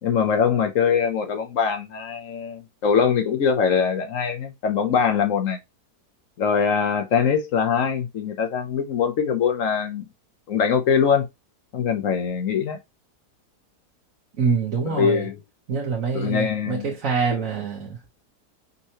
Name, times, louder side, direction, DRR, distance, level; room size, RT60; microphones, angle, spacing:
voice 1, 0.0-5.6 6.4-10.1 10.5-11.3 11.7-12.8 14.9-15.4 16.1-16.9, left 6 dB, 60° left, 1.1 m, -22 dB
voice 2, 14.4-15.3 15.7-18.0, right 5 dB, 55° right, 1.5 m, -25 dB
5.5 x 3.0 x 2.8 m
omnidirectional pair, 1.8 m